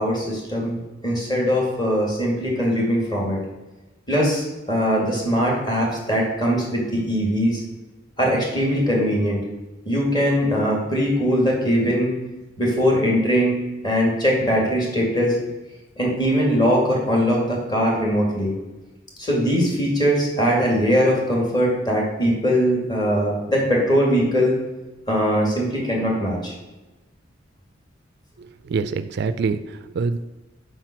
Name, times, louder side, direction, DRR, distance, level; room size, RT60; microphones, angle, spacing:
voice 1, 0.0-3.4 4.1-7.6 8.2-9.4 9.9-12.1 12.6-13.6 13.8-15.4 16.0-18.5 19.2-24.6 25.1-26.5, equal, 25° left, -2 dB, 2.3 m, -21 dB
voice 2, 28.7-30.2, right 4 dB, 60° right, 12 dB, 0.4 m, -25 dB
5.8 x 5.3 x 6.0 m, 1.1 s
head